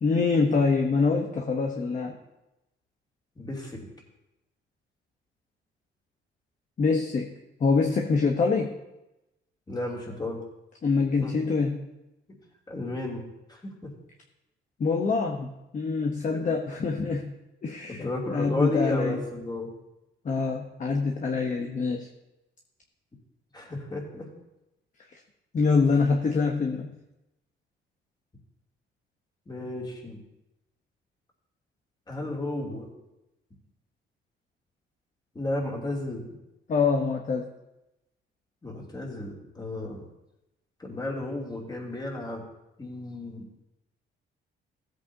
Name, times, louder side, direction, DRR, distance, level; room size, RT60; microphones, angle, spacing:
voice 1, 0.0-2.1 6.8-7.3 7.6-8.8 10.8-11.8 14.8-17.3 17.6-19.2 20.2-22.1 25.5-27.0 36.7-37.5, left 4 dB, 40° left, 2 dB, 1.0 m, -25 dB
voice 2, 3.4-3.9 9.7-10.4 11.2-11.3 12.7-13.2 13.5-13.9 16.3-16.5 17.9-19.7 23.5-24.3 29.5-30.2 32.1-32.9 35.3-36.2 38.6-40.1 40.8-42.4 42.8-43.6, left 2 dB, 20° left, -2 dB, 2.8 m, -33 dB
15.0 x 8.2 x 2.8 m, 0.94 s
cardioid pair, 90°, 20 cm